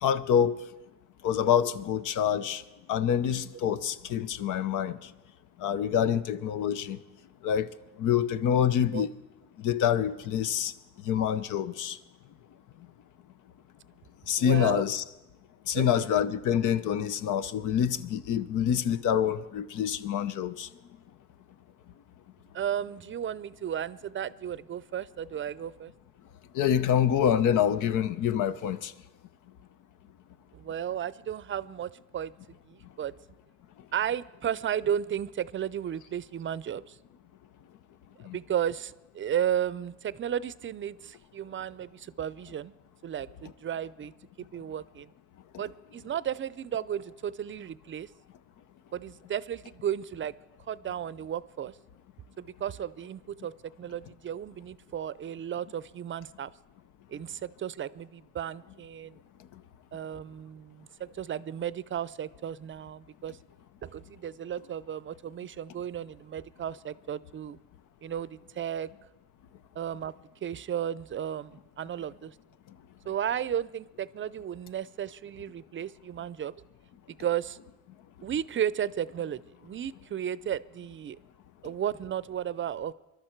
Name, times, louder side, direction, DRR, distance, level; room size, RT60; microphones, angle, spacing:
voice 1, 0.0-0.6 1.2-2.6 2.9-5.0 5.6-7.0 7.4-7.7 8.0-9.1 9.6-10.7 11.0-12.0 14.3-15.0 15.7-20.7 26.5-28.9 38.2-38.4, left 9 dB, 85° left, 0.7 m, -26 dB
voice 2, 14.4-14.9 15.7-16.1 22.5-25.9 30.5-32.3 32.7-33.1 33.9-37.0 38.2-42.7 43.0-44.1 44.4-45.1 45.6-48.1 48.9-50.3 50.7-51.8 52.4-53.5 53.8-56.5 57.1-59.2 59.9-63.4 63.8-67.6 68.0-68.9 69.8-70.1 70.4-72.3 73.1-76.5 77.2-77.6 78.2-81.2 81.6-82.9, right 9 dB, 40° right, 0.5 m, -34 dB
22.0 x 12.0 x 4.5 m
cardioid pair, 90°, 30 cm